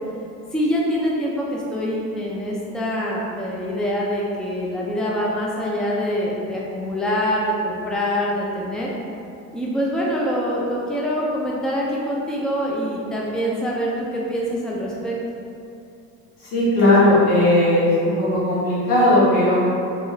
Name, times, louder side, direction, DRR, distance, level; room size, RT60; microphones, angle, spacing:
voice 1, 0.5-8.9 9.5-15.2, equal, ahead, -4 dB, 0.5 m, -25 dB
voice 2, 16.4-19.6, left 1 dB, 85° left, -8 dB, 1.4 m, -17 dB
3.6 x 3.0 x 2.7 m, 2.6 s
supercardioid pair, 85°, 35 cm